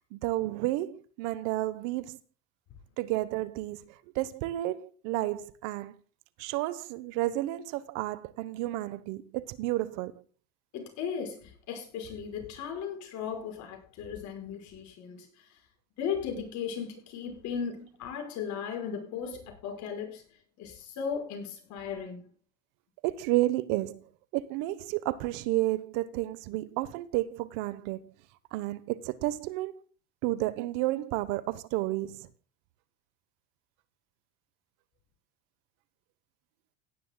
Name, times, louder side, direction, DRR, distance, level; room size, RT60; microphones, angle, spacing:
voice 1, 0.1-2.2 3.0-6.0 6.4-10.2 23.0-24.0 24.3-28.1 28.5-29.8 30.2-32.3, right 16 dB, 75° right, 1.2 m, -31 dB
voice 2, 10.7-15.4 16.0-20.2 20.6-22.2, left 7 dB, 60° left, 5.5 m, -36 dB
17.0 x 11.0 x 2.3 m
supercardioid pair, 100°, 32 cm